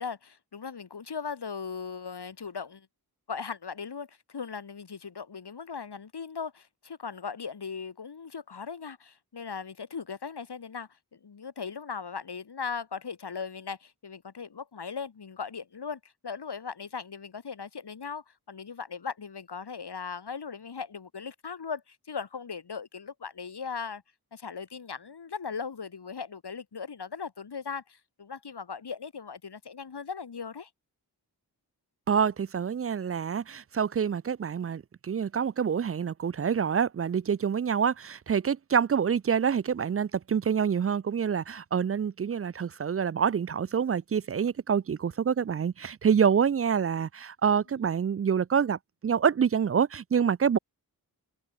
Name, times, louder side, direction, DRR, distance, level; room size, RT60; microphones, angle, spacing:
voice 1, 0.0-2.9 3.3-24.0 24.3-30.7 47.7-47.8, left 6 dB, 80° left, 5.9 m, -38 dB
voice 2, 32.1-50.6, right 7 dB, 40° right, 0.4 m, -27 dB
wide cardioid pair, 100°, 39 cm